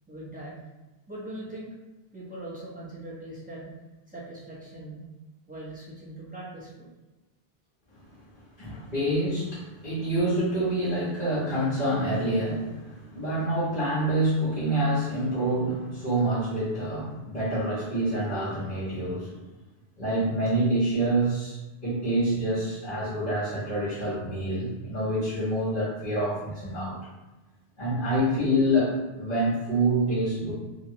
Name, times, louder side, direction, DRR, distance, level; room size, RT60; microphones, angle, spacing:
voice 1, 0.1-0.5 1.1-1.7 2.1-3.7 4.1-5.0 5.5-6.9, right 1 dB, 10° right, -8 dB, 0.8 m, -40 dB
voice 2, 8.6-19.3 20.0-21.6 21.8-27.0 27.8-30.5, right 1 dB, 50° left, -13 dB, 1.2 m, -27 dB
2.9 x 2.3 x 2.7 m, 1.1 s
omnidirectional pair, 1.0 m